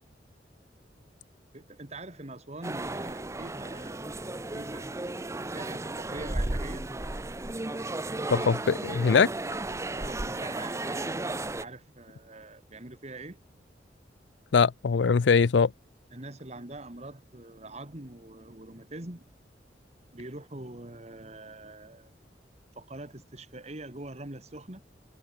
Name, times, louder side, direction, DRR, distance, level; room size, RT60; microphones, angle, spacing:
voice 1, 1.5-5.0 5.5-6.8 9.9-11.2 11.6-13.4 16.1-19.3 20.1-22.1 22.8-24.8, right 2 dB, 40° right, 2.1 m, -44 dB
sound 1, 2.6-11.6, right 2 dB, 15° right, 0.7 m, -34 dB
voice 2, 8.3-9.3 14.5-15.7, left 5 dB, 80° left, 0.5 m, -22 dB
head